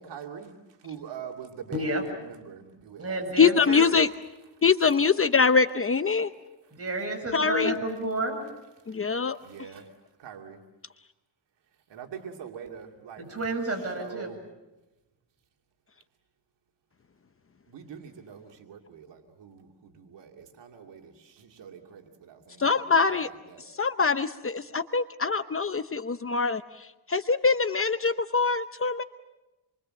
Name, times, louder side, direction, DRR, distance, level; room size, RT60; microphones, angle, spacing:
voice 1, 0.0-3.4 3.7-3.9 4.9-5.0 8.8-9.9 10.2-10.6 11.9-13.2 13.8-14.5 17.7-23.7, right 7 dB, 90° right, 2 dB, 2.7 m, -44 dB
voice 2, 1.7-2.0 3.0-3.9 6.7-8.4 13.2-14.3, right 2 dB, 35° right, 3 dB, 7.8 m, -30 dB
voice 3, 3.4-4.1 4.6-6.3 7.3-7.8 8.9-9.4 22.6-23.3 23.7-29.0, left 5 dB, 30° left, 10 dB, 0.9 m, -24 dB
27.5 x 24.0 x 7.7 m, 1.0 s
cardioid pair, 110°, 42 cm